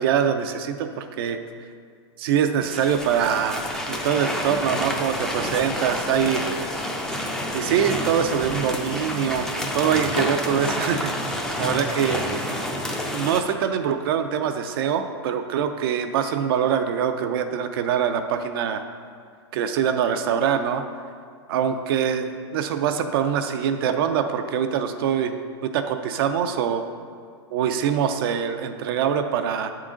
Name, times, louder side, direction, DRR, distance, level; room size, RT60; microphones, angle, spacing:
voice 1, 0.0-1.4 2.2-6.4 7.5-11.1 11.6-12.4 13.1-18.8 19.5-20.8 21.5-25.3 25.6-26.8 27.5-29.7, right 8 dB, 55° right, 7 dB, 0.4 m, -24 dB
sound 1, 2.6-13.4, left 1 dB, 5° left, 0.4 m, -29 dB
7.4 x 3.8 x 3.7 m, 2.1 s
hypercardioid pair, 135°, 14 cm